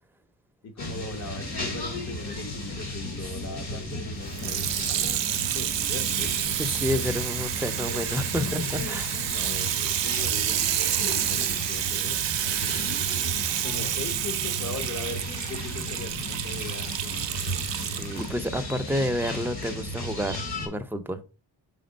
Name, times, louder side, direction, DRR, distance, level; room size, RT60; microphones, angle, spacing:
voice 1, 0.6-6.3 9.3-12.9 13.6-15.2 15.5-17.2, left 4 dB, 35° left, 1.3 m, -40 dB
sound 1, 0.8-20.7, left 1 dB, 55° left, 2.9 m, -34 dB
Water tap faucet / Sink (filling or washing), 4.3-18.3 19.0-19.1, right 12 dB, 70° right, 0.6 m, -29 dB
voice 2, 6.6-9.1 18.0-21.2, equal, 5° right, 0.7 m, -30 dB
5.3 x 3.7 x 5.2 m
cardioid pair, 75°, 45 cm